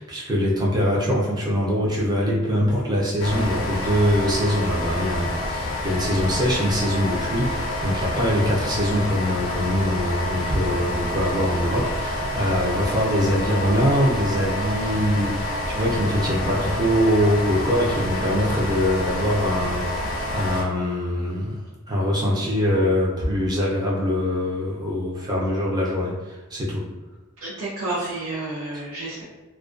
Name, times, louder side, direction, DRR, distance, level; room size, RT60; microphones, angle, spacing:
voice 1, 0.0-21.6 21.9-26.8, equal, 20° right, -5 dB, 0.5 m, -23 dB
sound 1, 3.2-20.6, left 1 dB, 75° left, 0.4 m, -28 dB
voice 2, 27.4-29.2, right 2 dB, 85° right, -10 dB, 0.7 m, -30 dB
2.3 x 2.2 x 2.4 m, 1.2 s
head